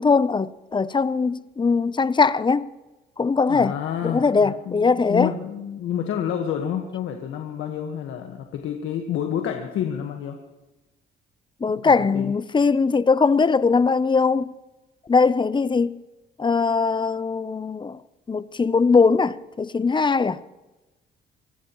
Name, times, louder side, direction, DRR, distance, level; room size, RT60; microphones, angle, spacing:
voice 1, 0.0-2.7 3.2-3.8 4.0-5.3 11.6-14.5 15.1-16.0 16.4-18.0 18.3-20.4, left 4 dB, 25° left, 0.7 m, -20 dB
voice 2, 3.5-10.4 11.7-12.3, left 9 dB, 85° left, 1.5 m, -29 dB
25.5 x 17.5 x 3.1 m
cardioid pair, 90°, 20 cm